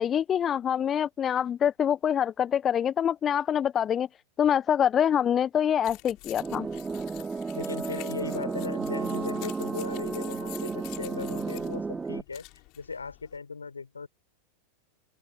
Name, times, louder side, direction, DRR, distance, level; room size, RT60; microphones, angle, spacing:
voice 1, 0.0-4.1 4.4-6.7, left 9 dB, 25° left, 1.0 m, -25 dB
sound 1, 5.8-13.4, left 27 dB, 40° left, 5.8 m, -48 dB
sound 2, 6.4-12.2, right 4 dB, 15° right, 2.4 m, -33 dB
voice 2, 7.5-12.4 12.7-14.1, left 4 dB, 75° left, 4.5 m, -38 dB
open air
figure-of-eight pair, 90°, 0 cm